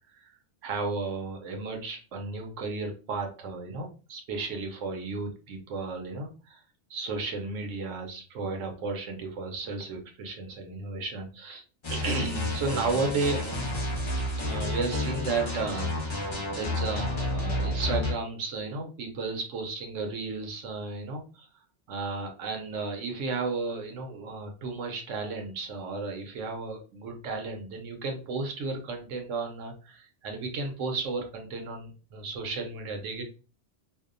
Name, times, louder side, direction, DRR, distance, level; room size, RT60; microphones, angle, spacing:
voice 1, 0.6-6.6 6.9-11.6 11.9-13.8 14.3-21.5 21.9-33.2, right 3 dB, 90° right, 3 dB, 1.0 m, -34 dB
sound 1, 11.8-18.1, left 1 dB, 35° left, 0.5 m, -30 dB
2.7 x 2.0 x 2.5 m, 0.35 s
omnidirectional pair, 1.2 m